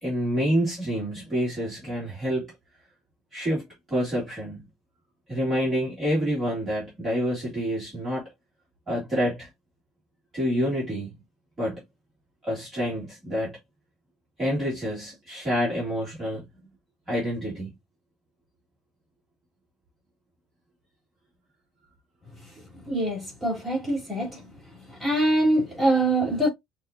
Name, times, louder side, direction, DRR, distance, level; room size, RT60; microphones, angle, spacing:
voice 1, 0.0-2.5 3.3-4.7 5.3-8.3 8.9-9.5 10.3-11.2 11.6-11.8 12.5-13.6 14.4-16.5 17.1-17.7, equal, 15° right, 2.4 m, -27 dB
voice 2, 22.9-24.4 25.0-26.5, right 1 dB, ahead, 3.4 m, -24 dB
6.2 x 2.7 x 2.5 m
cardioid pair, 180°, 0 cm